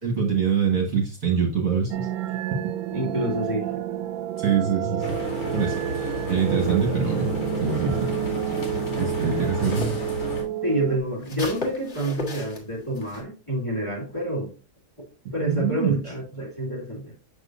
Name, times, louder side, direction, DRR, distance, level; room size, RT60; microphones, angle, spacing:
voice 1, 0.0-2.1 4.4-5.2 5.5-7.3 7.6-8.1 9.0-9.9 15.4-16.0, right 6 dB, 45° right, 1.5 m, -24 dB
sound 1, 1.9-11.0, right 12 dB, 80° right, 1.4 m, -30 dB
voice 2, 2.9-3.8 9.6-9.7 10.6-14.5 15.3-17.1, right 1 dB, 15° left, 1.5 m, -28 dB
sound 2, 5.0-10.4, left 1 dB, 75° left, 3.1 m, -31 dB
sound 3, 6.6-10.1 10.4-13.2, left 2 dB, 35° left, 1.6 m, -38 dB
6.7 x 6.1 x 2.5 m
omnidirectional pair, 2.4 m